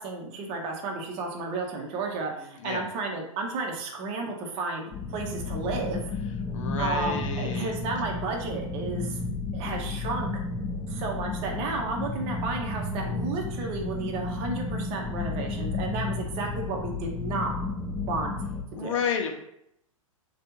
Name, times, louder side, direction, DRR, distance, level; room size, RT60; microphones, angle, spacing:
voice 1, 0.0-6.0 6.8-9.2 9.5-10.3 10.9-17.5 18.1-18.3 18.8-18.9, right 3 dB, 35° right, 1 dB, 0.7 m, -32 dB
voice 2, 2.3-2.9 6.5-7.7 18.8-19.3, left 6 dB, 60° left, 3 dB, 0.7 m, -31 dB
sound 1, 4.9-18.6, left 3 dB, 15° left, 0.6 m, -32 dB
3.3 x 2.3 x 3.0 m, 0.76 s
hypercardioid pair, 115°, 18 cm